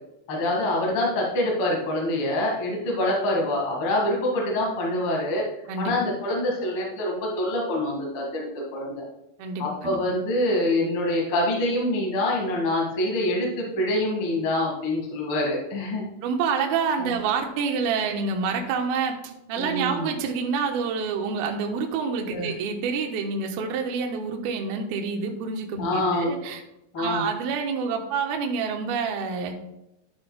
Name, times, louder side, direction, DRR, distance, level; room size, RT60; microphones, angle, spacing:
voice 1, 0.3-5.4 5.8-9.0 9.6-16.0 17.0-17.1 19.5-20.1 22.3-22.5 25.8-26.3 26.9-27.2, left 1 dB, 55° left, -2 dB, 1.5 m, -25 dB
voice 2, 9.4-10.0 16.2-26.6 27.0-29.5, right 5 dB, 75° right, 3 dB, 2.4 m, -27 dB
11.0 x 9.6 x 2.3 m, 0.87 s
omnidirectional pair, 5.5 m